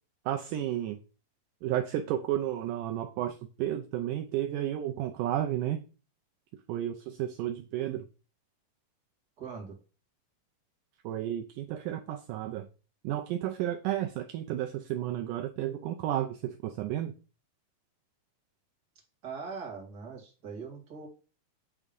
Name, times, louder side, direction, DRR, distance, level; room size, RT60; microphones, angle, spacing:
voice 1, 0.3-1.0 1.6-5.8 6.7-8.0 11.0-12.7 13.0-17.1, right 12 dB, 80° right, 2.0 m, -32 dB
voice 2, 9.4-9.8 19.2-21.1, right 5 dB, 35° right, 2.2 m, -41 dB
8.6 x 3.6 x 5.2 m
omnidirectional pair, 3.9 m